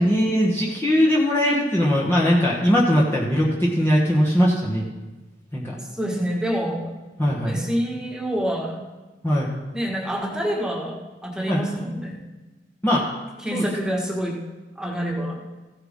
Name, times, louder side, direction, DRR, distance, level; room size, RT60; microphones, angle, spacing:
voice 1, 0.0-4.9 5.5-5.7 7.2-7.6 9.2-9.5 11.5-11.6 12.8-13.0 13.5-13.6, equal, 15° left, -5 dB, 1.3 m, -20 dB
voice 2, 5.8-6.9 7.4-8.8 9.7-12.2 13.4-14.4 14.8-15.4, equal, 5° right, -2 dB, 1.7 m, -27 dB
15.5 x 7.8 x 3.7 m, 1.2 s
head